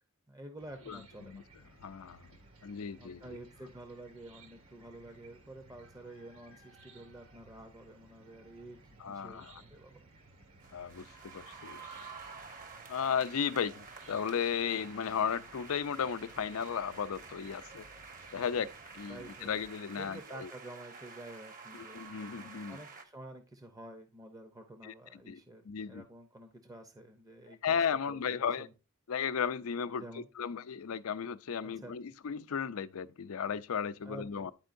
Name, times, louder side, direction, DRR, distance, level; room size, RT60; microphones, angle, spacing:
voice 1, 0.3-1.5 3.0-10.0 18.6-18.7 19.1-19.5 20.0-22.0 22.7-28.7 29.9-30.3 31.6-31.9 34.0-34.5, right 1 dB, 15° right, 0.6 m, -50 dB
Chicken rooster / Cricket, 0.6-19.7, right 2 dB, 70° right, 1.6 m, -59 dB
voice 2, 1.8-2.3 2.6-3.4 9.0-9.5 10.7-11.8 12.9-17.8 18.3-18.7 19.0-20.5 21.7-22.8 24.8-24.9 25.3-25.4 25.7-26.0 27.6-28.7 29.1-34.5, left 7 dB, 75° left, 0.5 m, -35 dB
sound 1, 10.6-23.0, right 4 dB, 40° right, 0.9 m, -50 dB
10.5 x 4.5 x 2.5 m
head